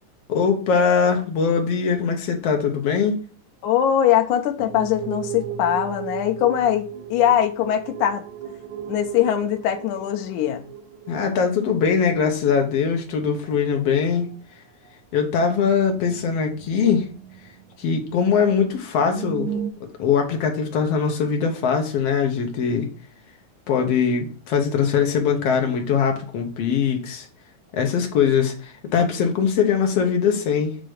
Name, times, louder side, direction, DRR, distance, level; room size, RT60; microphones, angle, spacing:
voice 1, 0.3-3.2 11.1-14.3 15.1-17.1 17.8-22.9 23.7-27.3 27.7-30.8, left 6 dB, 60° left, 1.9 m, -21 dB
voice 2, 3.6-8.3 8.9-10.7, left 10 dB, 80° left, 2.2 m, -21 dB
sound 1, 4.6-13.1 13.4-14.0 14.3-14.4 14.9-15.0 16.0-18.1 18.5-18.6 18.8-19.7, right 8 dB, 80° right, 1.8 m, -36 dB
7.7 x 3.0 x 4.9 m
omnidirectional pair, 3.6 m